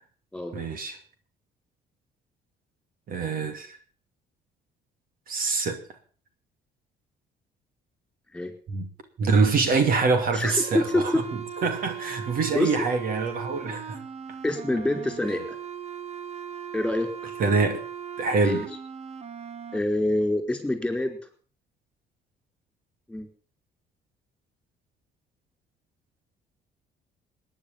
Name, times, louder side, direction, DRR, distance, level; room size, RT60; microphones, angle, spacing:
voice 1, 0.5-1.0 3.1-3.8 5.3-5.8 8.7-8.9 9.2-11.1 11.6-14.0 17.4-17.8 18.2-18.6, right 4 dB, 55° right, 2.5 m, -24 dB
voice 2, 10.3-11.2 12.5-12.8 14.4-15.6 16.7-17.3 18.4-18.6 19.7-21.2 23.1-23.3, left 1 dB, 5° left, 4.8 m, -26 dB
sound 1, 10.5-19.8, right 8 dB, 40° right, 1.4 m, -38 dB
19.0 x 10.0 x 7.1 m
cardioid pair, 110°, 17 cm